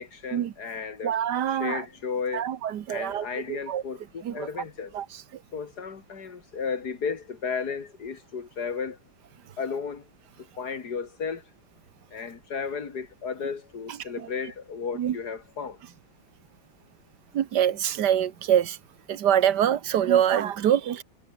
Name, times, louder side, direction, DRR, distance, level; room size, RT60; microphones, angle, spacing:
voice 1, 0.0-1.2 1.5-2.5 2.9-4.9 5.5-9.0 9.6-10.0 10.6-11.4 12.1-15.8, left 5 dB, 55° left, 2.9 m, -34 dB
voice 2, 1.0-1.9 2.3-3.8 4.2-4.5 4.9-5.1 13.9-14.0 15.0-15.2 17.3-18.8 19.1-21.0, right 10 dB, 65° right, 1.6 m, -25 dB
omnidirectional pair, 2.1 m